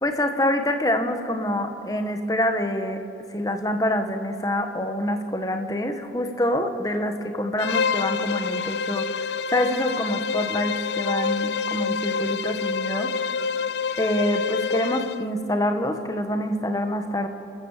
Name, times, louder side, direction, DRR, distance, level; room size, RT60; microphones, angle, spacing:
voice 1, 0.0-3.0 3.3-13.3 14.0-17.3, left 1 dB, 20° left, 6 dB, 1.5 m, -26 dB
Bowed string instrument, 7.6-15.3, left 5 dB, 75° left, 0.6 m, -27 dB
29.5 x 14.0 x 7.4 m, 2.7 s
head